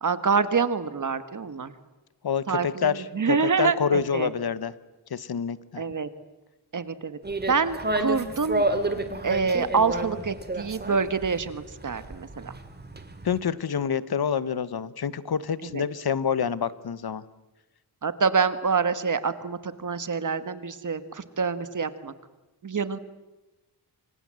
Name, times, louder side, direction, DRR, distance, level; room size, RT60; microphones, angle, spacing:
voice 1, 0.0-1.7 2.5-4.3 5.8-6.1 6.7-7.2 7.5-8.6 9.2-12.5 15.6-15.8 18.0-22.1 22.6-23.0, right 5 dB, 45° right, 13 dB, 1.5 m, -26 dB
voice 2, 2.2-4.7 5.1-5.8 13.2-17.2, left 7 dB, 65° left, 16 dB, 1.1 m, -27 dB
sound 1, 7.2-13.4, right 2 dB, 25° right, 2.3 m, -30 dB
28.5 x 25.5 x 7.7 m, 1.1 s
wide cardioid pair, 165°, 41 cm